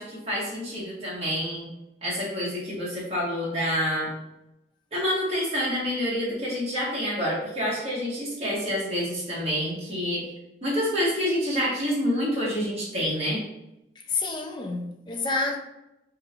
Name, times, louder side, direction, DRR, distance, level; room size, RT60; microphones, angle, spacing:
voice 1, 0.0-1.7 2.0-4.1 4.9-10.2 10.6-13.4, equal, 35° right, 1.3 m, -27 dB
voice 2, 14.0-15.6, left 3 dB, 25° left, 0.3 m, -29 dB
4.1 x 2.8 x 2.4 m
head